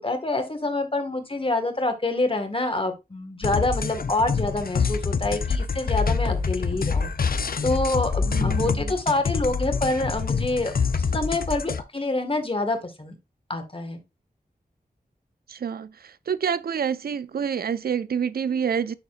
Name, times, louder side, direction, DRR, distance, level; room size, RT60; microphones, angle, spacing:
voice 1, 0.0-7.1 7.6-13.1 13.5-14.0, left 2 dB, 35° left, 1.6 m, -26 dB
sound 1, 3.4-11.8, left 5 dB, 65° left, 0.6 m, -26 dB
voice 2, 8.3-8.9 15.5-18.9, right 7 dB, 70° right, 0.4 m, -28 dB
11.0 x 4.0 x 2.5 m
wide cardioid pair, 65°, 16 cm